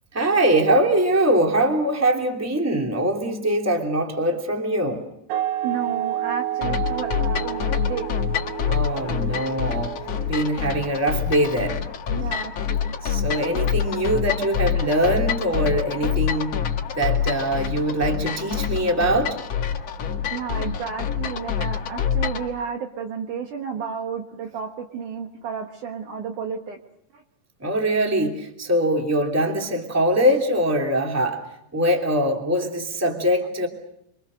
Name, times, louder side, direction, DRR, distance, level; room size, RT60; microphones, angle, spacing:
voice 1, 0.1-5.1 8.7-10.0 10.3-11.8 13.0-16.5 16.9-19.4 27.6-31.5 31.7-33.7, right 1 dB, 5° right, 2 dB, 2.3 m, -22 dB
sound 1, 5.3-10.7, right 12 dB, 85° right, 3.4 m, -30 dB
voice 2, 5.6-8.1 12.1-12.9 20.3-26.8 27.1-27.2, right 6 dB, 60° right, 3 dB, 2.5 m, -32 dB
sound 2, 6.6-22.5, left 8 dB, 50° left, 2.4 m, -26 dB
27.5 x 25.0 x 6.5 m, 0.76 s
omnidirectional pair, 4.6 m